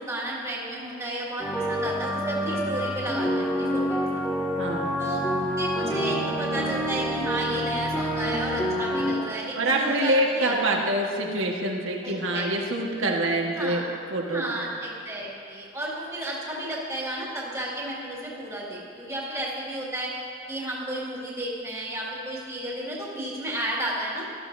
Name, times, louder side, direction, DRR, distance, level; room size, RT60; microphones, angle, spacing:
voice 1, 0.0-4.2 5.0-5.2 5.6-10.6 12.0-12.5 13.5-13.9 14.3-20.1 20.5-24.3, right 1 dB, 15° right, -5 dB, 2.0 m, -32 dB
sound 1, 1.4-9.1, equal, 10° left, 1.6 m, -27 dB
voice 2, 4.6-5.0 9.5-13.8 14.1-14.7, right 1 dB, 85° right, 0 dB, 1.5 m, -26 dB
17.5 x 13.0 x 2.7 m, 2.6 s
head